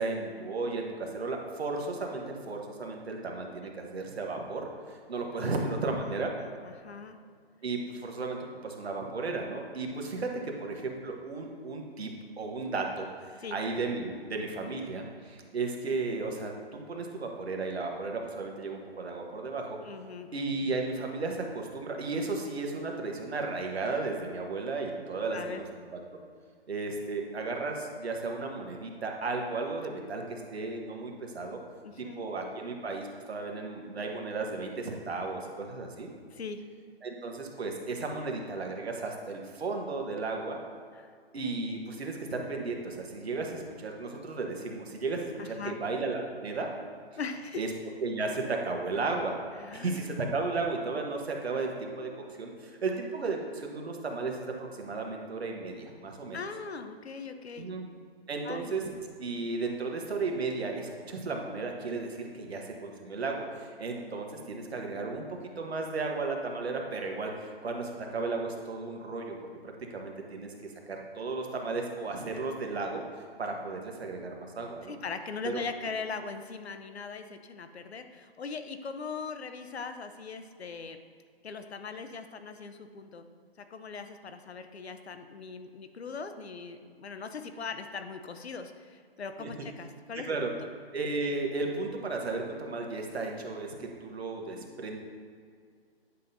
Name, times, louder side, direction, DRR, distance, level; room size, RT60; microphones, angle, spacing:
voice 1, 0.0-6.3 7.6-8.4 8.6-12.1 12.4-19.8 20.3-25.6 25.9-26.0 26.7-31.6 32.0-36.1 37.0-40.6 41.3-46.7 47.6-47.7 48.0-49.4 49.7-56.4 57.6-57.9 58.3-58.8 59.2-65.2 65.6-67.3 67.6-69.4 69.9-70.5 70.9-73.0 73.4-75.0 89.4-89.5 90.1-90.5 90.9-95.0, right 3 dB, 80° right, 2 dB, 1.3 m, -34 dB
voice 2, 6.1-7.2 13.4-13.6 19.8-20.3 25.3-25.6 31.8-32.2 36.3-36.6 40.9-41.1 45.4-45.8 47.2-47.6 49.6-50.0 56.3-57.7 58.4-58.7 64.4-65.1 74.8-81.0 81.4-83.3 83.6-90.3, left 5 dB, 85° left, 8 dB, 0.8 m, -40 dB
9.8 x 5.6 x 2.7 m, 2.1 s
hypercardioid pair, 160°, 31 cm